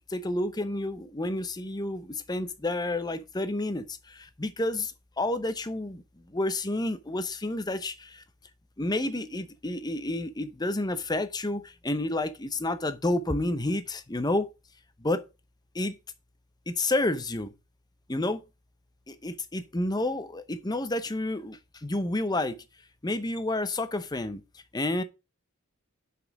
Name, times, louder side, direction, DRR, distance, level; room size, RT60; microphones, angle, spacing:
voice 1, 0.0-8.2 8.8-14.5 15.0-15.3 15.7-16.0 16.7-17.5 18.1-18.4 19.1-22.6 23.0-25.0, left 2 dB, 20° left, 0.7 m, -30 dB
6.2 x 5.5 x 6.9 m
head